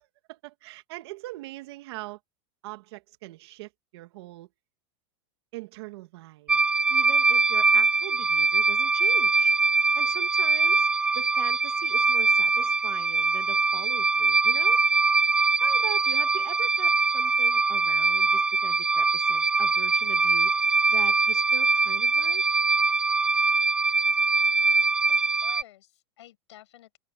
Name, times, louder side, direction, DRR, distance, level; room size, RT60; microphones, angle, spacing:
voice 1, 0.3-2.2 2.6-4.5 5.5-6.6 6.9-9.5 9.9-10.9 11.1-14.8 15.6-20.5 20.9-22.4, right 19 dB, 65° right, 2.1 m, -41 dB
sound 1, 6.5-25.6, right 4 dB, 5° right, 0.4 m, -23 dB
voice 2, 25.1-27.0, left 14 dB, 80° left, 7.8 m, -51 dB
supercardioid pair, 145°, 15 cm